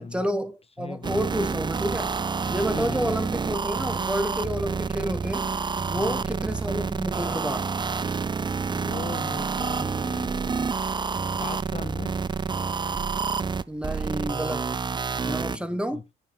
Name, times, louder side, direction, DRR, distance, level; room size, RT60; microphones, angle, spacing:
voice 1, 0.0-2.2 2.5-5.5 5.9-7.7 13.7-14.8 15.2-16.0, equal, 5° right, 1.4 m, -30 dB
voice 2, 0.8-1.3 2.7-3.1 5.9-6.2 8.7-10.8 11.4-12.1 15.2-16.0, left 5 dB, 30° left, 0.6 m, -39 dB
sound 1, 1.0-15.6, right 5 dB, 20° right, 0.5 m, -28 dB
10.5 x 7.0 x 3.5 m
cardioid pair, 90°, 20 cm